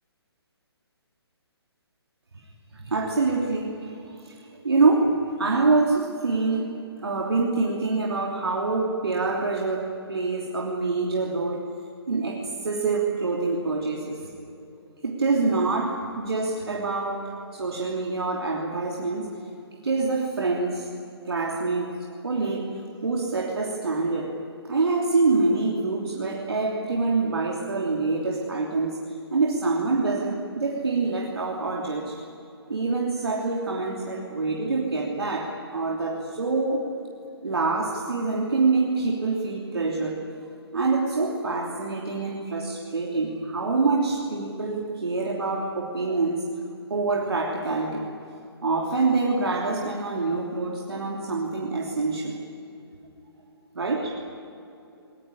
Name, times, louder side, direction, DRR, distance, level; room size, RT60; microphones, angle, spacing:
voice 1, 2.7-11.7 12.1-14.3 15.0-19.3 19.7-20.9 21.2-22.0 22.2-24.3 24.7-29.0 29.3-32.2 32.7-36.9 37.4-40.2 40.7-46.4 46.9-48.1 48.6-52.4 53.7-54.2, right 3 dB, 65° right, -1 dB, 3.2 m, -26 dB
22.5 x 21.5 x 10.0 m, 2.8 s
figure-of-eight pair, 135°, 14 cm